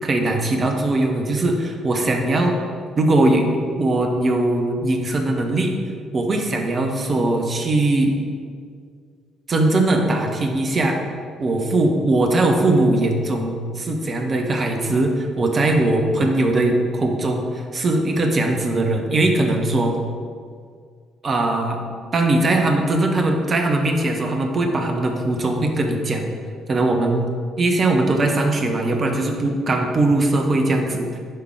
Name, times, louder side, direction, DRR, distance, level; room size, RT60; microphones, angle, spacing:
voice 1, 0.0-2.5 3.0-3.4 3.8-5.7 6.1-8.1 9.5-11.0 11.4-20.0 21.2-21.8 22.1-26.3 26.7-27.3 27.6-31.2, right 2 dB, 40° right, 3 dB, 1.1 m, -20 dB
9.3 x 3.9 x 4.8 m, 2.1 s
figure-of-eight pair, 45°, 0 cm